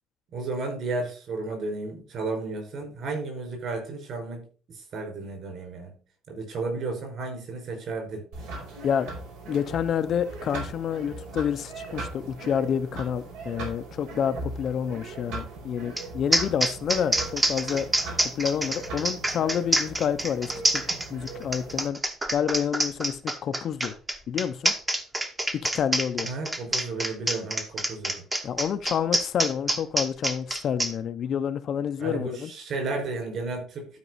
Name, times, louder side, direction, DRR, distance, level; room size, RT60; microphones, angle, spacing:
voice 1, 0.3-6.0 6.3-8.3 26.2-28.3 32.0-33.9, right 3 dB, 45° right, 5.1 m, -33 dB
sound 1, 8.3-21.9, right 2 dB, 85° right, 4.8 m, -39 dB
voice 2, 9.5-17.9 18.4-20.5 20.9-22.0 22.3-24.0 24.3-24.7 25.5-26.3 28.4-32.5, left 8 dB, 40° left, 0.5 m, -28 dB
sound 2, 16.0-16.1 16.3-30.9, right 1 dB, 10° right, 0.9 m, -26 dB
12.5 x 5.2 x 4.0 m
cardioid pair, 175°, 0 cm